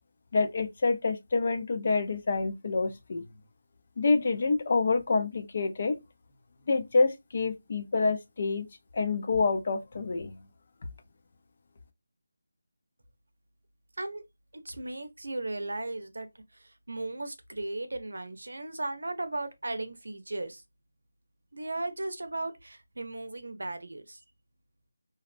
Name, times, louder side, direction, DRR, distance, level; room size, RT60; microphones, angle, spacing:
voice 1, 0.3-3.2 4.0-6.0 6.7-8.7 8.9-10.3, left 3 dB, 30° left, 0.4 m, -27 dB
voice 2, 14.5-20.6 21.5-24.2, right 2 dB, 85° right, 0.6 m, -36 dB
2.5 x 2.1 x 2.4 m
figure-of-eight pair, 180°, 0 cm